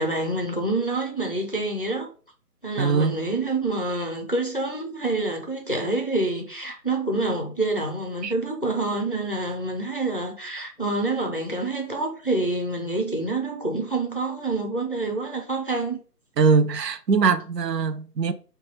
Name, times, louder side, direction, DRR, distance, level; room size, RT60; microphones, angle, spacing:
voice 1, 0.0-2.1 2.6-16.0, right 2 dB, 35° left, 0.4 m, -27 dB
voice 2, 2.8-3.2 8.2-8.3 16.4-18.3, right 5 dB, 80° right, 0.6 m, -21 dB
3.0 x 2.2 x 4.1 m
figure-of-eight pair, 145°, 48 cm